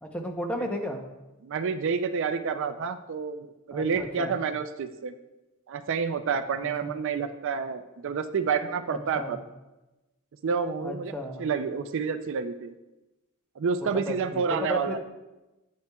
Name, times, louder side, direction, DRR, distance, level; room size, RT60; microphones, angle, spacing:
voice 1, 0.0-1.0 3.7-4.4 6.5-6.9 8.9-9.4 10.8-11.5 14.1-15.0, left 1 dB, 5° left, 2 dB, 0.7 m, -34 dB
voice 2, 1.4-5.1 5.7-9.4 10.4-11.1 11.4-12.7 13.6-15.0, right 5 dB, 60° right, 10 dB, 0.4 m, -29 dB
9.1 x 8.5 x 2.3 m, 1.0 s
head